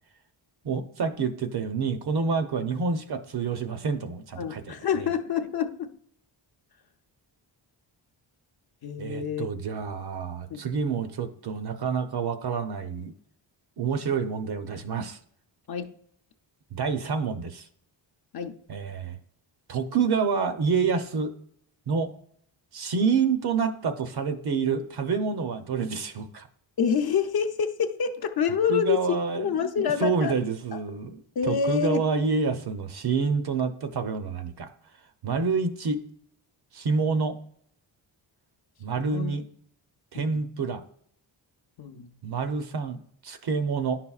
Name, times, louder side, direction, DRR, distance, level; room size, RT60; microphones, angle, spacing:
voice 1, 0.6-4.7 9.0-13.1 13.8-15.2 16.7-17.6 18.7-19.2 19.7-21.3 21.9-22.1 22.7-26.5 28.7-31.2 31.5-34.7 35.2-36.0 36.7-37.4 38.8-39.4 40.1-40.8 42.2-44.0, right 5 dB, 55° right, 0.7 m, -28 dB
voice 2, 4.4-5.9 8.8-9.5 10.5-10.6 15.7-15.9 18.3-18.5 26.8-30.4 30.7-30.8 31.4-32.1 39.0-39.3 40.1-40.4 41.8-42.1, left 7 dB, 55° left, 0.6 m, -27 dB
10.5 x 5.7 x 2.4 m
wide cardioid pair, 140°, 46 cm